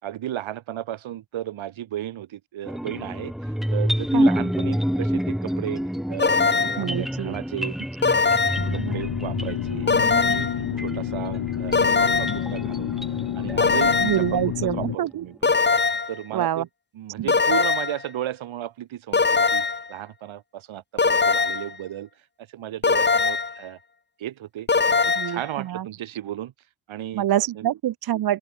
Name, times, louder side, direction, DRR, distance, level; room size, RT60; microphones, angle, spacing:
voice 1, 0.0-5.8 6.1-7.8 8.1-8.2 8.7-10.5 10.8-13.0 13.4-15.5 16.1-16.7 16.9-22.1 22.4-23.8 24.2-24.7 25.0-26.5 26.9-27.2 27.6-27.7, right 12 dB, 75° right, 7.9 m, -34 dB
sound 1, 2.7-14.8, equal, ahead, 1.5 m, -28 dB
sound 2, 6.2-6.9 8.0-8.8 9.9-10.6 11.7-12.5 13.6-14.3 15.4-16.2 17.3-18.0 19.1-19.9 21.0-21.7 22.8-23.6 24.7-25.4, left 4 dB, 20° left, 1.9 m, -21 dB
voice 2, 6.8-7.3 8.8-9.0 14.0-15.2 16.3-16.7 17.2-17.3 25.2-25.9 27.1-28.4, right 12 dB, 50° right, 0.7 m, -26 dB
sound 3, 8.6-15.0, left 11 dB, 70° left, 5.8 m, -29 dB
open air
cardioid pair, 110°, 47 cm